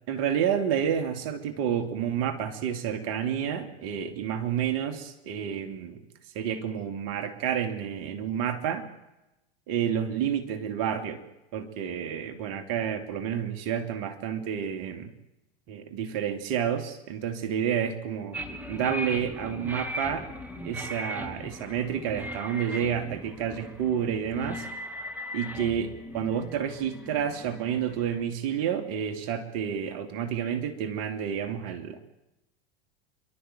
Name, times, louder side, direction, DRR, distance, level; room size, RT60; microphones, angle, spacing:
voice 1, 0.1-6.0 6.3-8.9 9.7-11.2 11.5-15.1 15.7-18.4 18.7-20.3 20.6-24.7 25.3-32.0, right 8 dB, 55° right, 9 dB, 2.8 m, -30 dB
sound 1, 18.3-28.2, equal, 5° right, 2.9 m, -38 dB
29.5 x 12.5 x 9.1 m, 0.93 s
hypercardioid pair, 90°, 32 cm